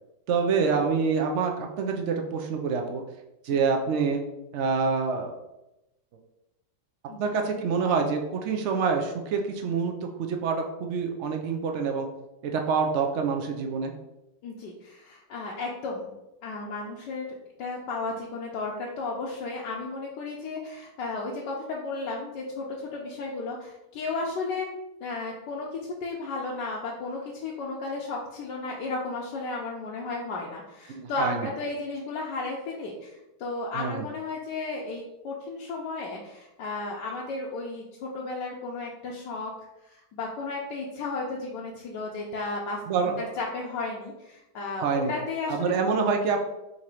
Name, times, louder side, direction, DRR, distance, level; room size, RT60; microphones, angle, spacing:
voice 1, 0.3-3.0 3.4-4.2 4.5-5.4 7.2-12.1 12.4-13.9 30.9-31.5 33.7-34.1 42.9-43.3 44.8-45.1 45.5-46.4, right 5 dB, 85° right, 3 dB, 0.6 m, -26 dB
voice 2, 14.4-16.1 16.4-17.3 17.6-24.7 25.0-39.5 39.8-42.8 43.2-45.7, left 3 dB, 80° left, -3 dB, 1.3 m, -34 dB
3.8 x 2.8 x 4.7 m, 0.92 s
omnidirectional pair, 1.9 m